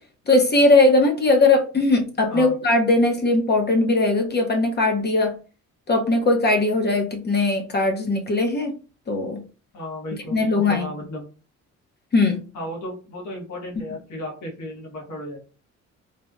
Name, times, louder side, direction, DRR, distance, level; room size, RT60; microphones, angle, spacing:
voice 1, 0.3-5.3 5.9-8.7 9.1-9.4 10.3-10.9 12.1-12.4, left 2 dB, 35° left, 0.7 m, -19 dB
voice 2, 9.7-11.3 12.5-15.4, left 1 dB, 70° left, 1.3 m, -34 dB
3.2 x 2.2 x 2.4 m
cardioid pair, 90°, 30 cm